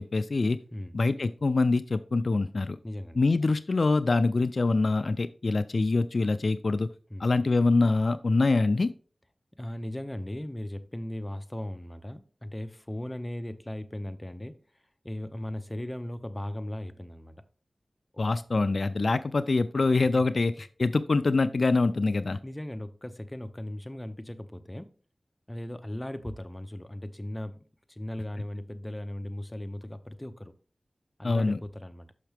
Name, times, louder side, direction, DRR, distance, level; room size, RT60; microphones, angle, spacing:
voice 1, 0.0-0.6 0.9-2.8 3.2-6.9 7.2-8.9 18.2-20.5 20.8-22.4 31.2-31.6, left 3 dB, 65° left, 0.4 m, -24 dB
voice 2, 2.8-3.2 7.1-7.2 9.6-14.5 15.0-17.4 18.1-18.2 22.4-24.9 25.5-30.5 31.2-32.1, left 1 dB, 15° left, 0.6 m, -37 dB
6.4 x 5.9 x 3.4 m
wide cardioid pair, 75°, 0 cm